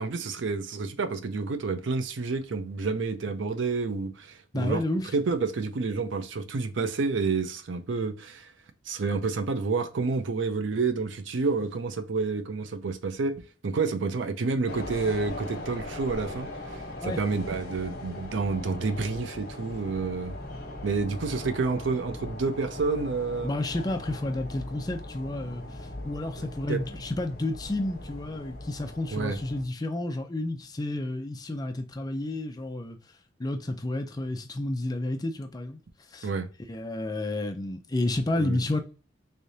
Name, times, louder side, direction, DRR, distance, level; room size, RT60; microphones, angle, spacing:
voice 1, 0.0-4.8 5.1-8.5 8.9-20.4 20.8-23.5 26.7-26.8 29.1-29.4 36.2-36.5 38.4-38.6, right 4 dB, 85° right, 0.5 m, -29 dB
voice 2, 4.5-5.1 17.0-17.2 23.4-33.0 33.4-35.8 36.1-36.3 36.7-38.8, left 2 dB, 20° left, 0.4 m, -31 dB
sound 1, 14.7-29.6, left 1 dB, 55° left, 1.0 m, -40 dB
3.6 x 3.3 x 2.7 m
head